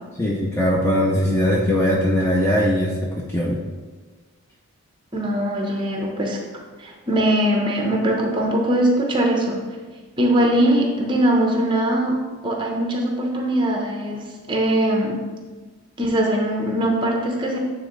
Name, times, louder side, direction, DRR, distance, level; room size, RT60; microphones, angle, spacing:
voice 1, 0.2-3.6, equal, 10° left, -3 dB, 0.4 m, -20 dB
voice 2, 5.1-6.4 6.8-9.6 10.2-15.2 16.0-17.6, right 1 dB, 20° right, 0 dB, 0.8 m, -21 dB
8.9 x 3.6 x 3.1 m, 1.4 s
head